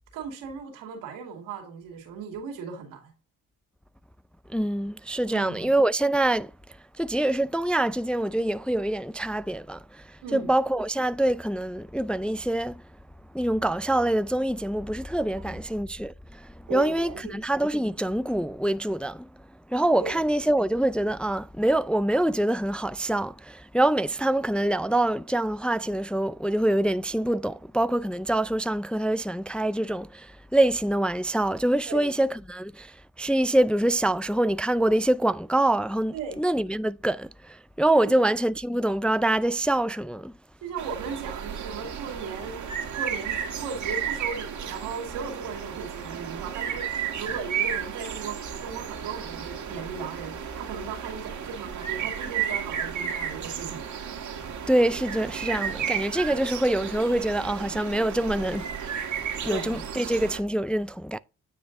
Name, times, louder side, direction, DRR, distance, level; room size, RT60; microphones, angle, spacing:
voice 1, 0.1-3.1 5.3-5.7 10.2-10.5 15.3-15.6 16.7-17.4 20.0-20.2 31.9-32.2 36.1-36.4 38.0-38.3 40.6-42.7 42.9-53.8 59.5-59.8, right 5 dB, 90° right, 2.6 m, -37 dB
voice 2, 4.5-6.5 7.0-12.8 13.3-19.3 19.7-40.3 54.7-59.0 59.4-61.2, right 1 dB, 5° left, 0.3 m, -25 dB
sound 1, 40.8-60.4, right 8 dB, 60° right, 1.8 m, -33 dB
9.4 x 5.2 x 2.6 m
supercardioid pair, 50°, 32 cm